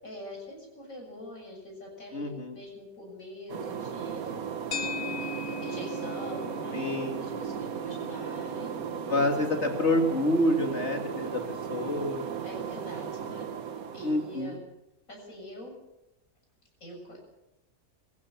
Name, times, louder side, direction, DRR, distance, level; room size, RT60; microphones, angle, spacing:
voice 1, 0.0-9.2 12.4-13.4 13.9-14.6 15.1-15.7 16.8-17.2, equal, 70° left, 0 dB, 7.7 m, -44 dB
voice 2, 2.1-2.5 6.7-7.2 9.1-11.4 11.7-12.3 14.0-14.5, left 1 dB, 50° left, 4 dB, 2.7 m, -27 dB
sound 1, 3.5-14.6, right 7 dB, 80° right, 1.6 m, -36 dB
sound 2, 4.7-13.1, left 4 dB, 90° left, 1.6 m, -42 dB
23.0 x 15.5 x 7.3 m, 0.92 s
omnidirectional pair, 1.5 m